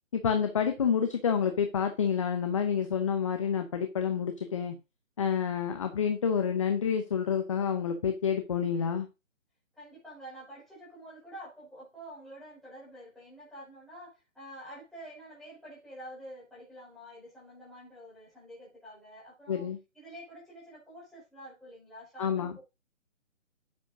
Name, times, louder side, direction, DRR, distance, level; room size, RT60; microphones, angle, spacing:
voice 1, 0.1-4.7 5.2-9.1 19.5-19.8 22.2-22.5, left 7 dB, 25° left, 0.8 m, -28 dB
voice 2, 9.7-19.7 19.9-22.6, right 1 dB, ahead, 5.4 m, -48 dB
10.0 x 9.0 x 2.7 m
hypercardioid pair, 155°, 40 cm